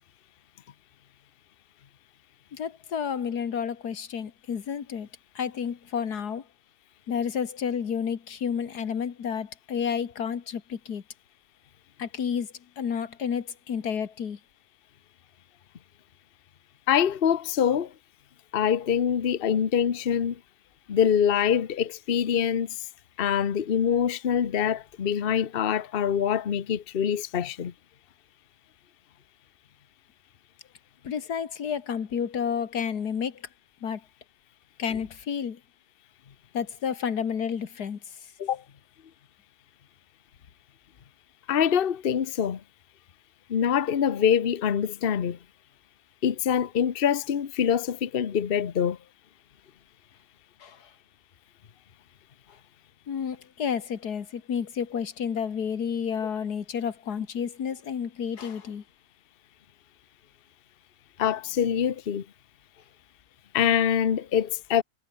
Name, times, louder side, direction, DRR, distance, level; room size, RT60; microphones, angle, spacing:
voice 1, 2.5-5.1 5.4-6.4 7.1-11.0 12.0-12.5 12.8-14.4 31.0-33.4 33.8-34.0 34.8-35.6 36.5-38.0 50.6-50.9 53.1-58.8, left 7 dB, 85° left, 2.1 m, -30 dB
voice 2, 16.9-17.9 18.5-20.4 20.9-22.8 23.2-27.7 38.4-38.6 41.5-42.6 43.5-45.4 46.2-49.0 61.2-62.2 63.5-64.8, left 8 dB, 40° left, 1.0 m, -24 dB
omnidirectional pair, 1.6 m